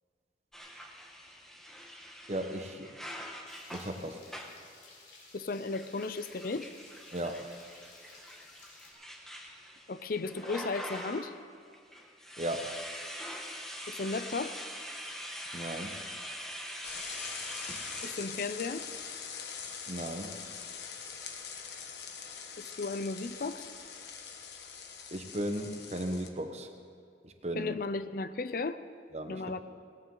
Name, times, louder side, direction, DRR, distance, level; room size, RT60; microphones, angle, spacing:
sound 1, 0.5-4.7 5.6-11.4 11.7-18.3, equal, ahead, 1.2 m, -44 dB
voice 1, 2.3-2.9 3.7-4.2 7.1-7.4 12.4-12.8 15.5-16.0 19.9-20.3 25.1-26.7 27.2-27.7 29.1-29.4, right 1 dB, 35° right, 5 dB, 1.1 m, -36 dB
sound 2, 3.5-8.9, left 3 dB, 85° left, 4.9 m, -56 dB
voice 2, 5.3-6.7 9.9-11.3 13.9-14.6 18.0-18.8 22.6-23.7 27.5-28.8 29.3-29.6, left 3 dB, 50° left, 12 dB, 0.5 m, -35 dB
sound 3, 16.8-26.3, left 6 dB, 65° left, 1.3 m, -43 dB
19.0 x 18.0 x 3.9 m, 2.2 s
head